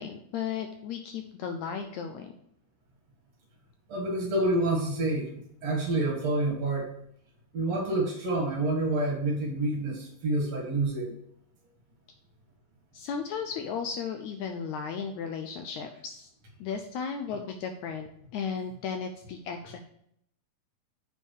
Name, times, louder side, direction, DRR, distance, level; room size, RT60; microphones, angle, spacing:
voice 1, 0.0-2.3 12.9-16.3 16.6-18.1 18.3-19.8, left 6 dB, 80° left, 5 dB, 1.7 m, -35 dB
voice 2, 3.9-5.3 5.6-6.9 7.5-11.1, right 2 dB, 55° right, 1 dB, 2.6 m, -28 dB
7.2 x 5.4 x 4.6 m, 0.71 s
omnidirectional pair, 3.8 m